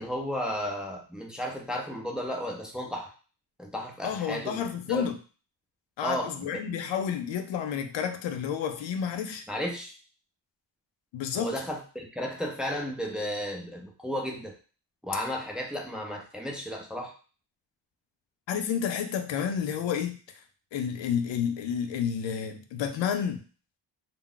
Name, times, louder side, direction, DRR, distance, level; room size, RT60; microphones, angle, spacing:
voice 1, 0.0-3.1 3.6-5.1 6.0-6.6 9.5-9.9 11.3-14.6 15.0-17.1, equal, ahead, 0 dB, 0.5 m, -34 dB
voice 2, 4.0-5.1 6.0-9.4 11.1-11.5 18.5-20.2 20.7-23.4, left 8 dB, 85° left, 6 dB, 0.5 m, -30 dB
2.2 x 2.0 x 3.7 m, 0.37 s
cardioid pair, 90°, 44 cm